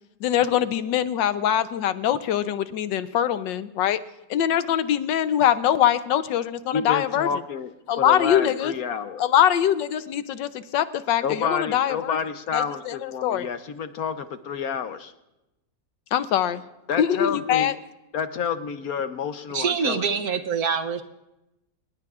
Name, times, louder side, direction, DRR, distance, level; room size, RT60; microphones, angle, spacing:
voice 1, 0.2-4.0 4.3-7.3 7.9-8.7 9.2-12.2 12.5-13.5 16.1-16.6 17.0-17.7, left 10 dB, 85° left, 12 dB, 1.4 m, -23 dB
voice 2, 6.7-9.2 11.2-15.1 16.9-17.7 18.1-20.0, left 7 dB, 60° left, 9 dB, 1.1 m, -29 dB
voice 3, 19.5-21.0, right 6 dB, 60° right, 9 dB, 1.2 m, -25 dB
25.5 x 20.0 x 2.4 m, 0.93 s
omnidirectional pair, 1.9 m